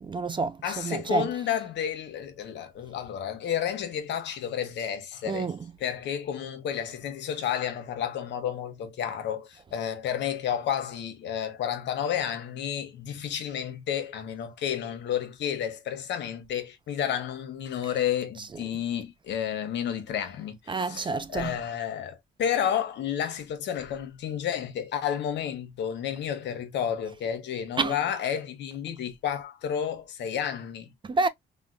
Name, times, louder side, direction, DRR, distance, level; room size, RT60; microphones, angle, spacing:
voice 1, 0.0-1.3 5.3-5.6 20.7-21.6 27.8-28.0 31.0-31.3, right 3 dB, 25° right, 0.4 m, -28 dB
voice 2, 0.6-30.9, left 9 dB, 80° left, 0.9 m, -31 dB
3.5 x 2.1 x 2.5 m
cardioid pair, 100°, 18 cm